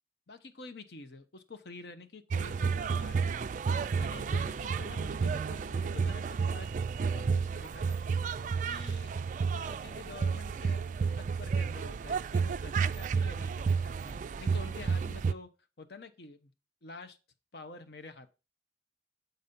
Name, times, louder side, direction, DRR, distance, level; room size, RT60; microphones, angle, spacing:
voice 1, 0.3-3.5 3.9-6.7 7.0-8.0 8.6-9.1 9.5-10.8 11.2-15.5 15.8-16.5 16.8-17.2 17.5-18.3, left 3 dB, 60° left, 9 dB, 0.8 m, -48 dB
sound 1, 2.3-15.3, right 5 dB, 45° right, 0.3 m, -31 dB
8.0 x 4.1 x 5.2 m, 0.30 s
head